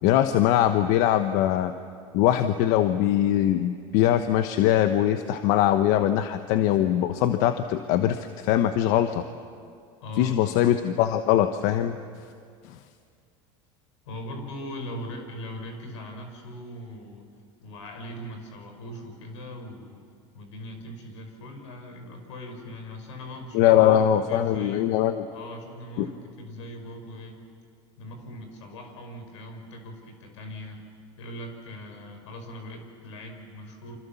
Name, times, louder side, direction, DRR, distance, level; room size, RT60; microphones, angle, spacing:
voice 1, 0.0-1.7 2.1-9.2 10.2-12.0 23.5-25.3 26.0-26.1, left 11 dB, 65° left, 9 dB, 1.2 m, -22 dB
voice 2, 10.0-10.6 14.0-17.3 17.6-20.0 20.3-24.9 25.3-27.4 28.0-30.8 31.2-34.0, left 1 dB, 85° left, 5 dB, 5.2 m, -40 dB
28.5 x 26.0 x 7.2 m, 2.2 s
supercardioid pair, 95°, 15 cm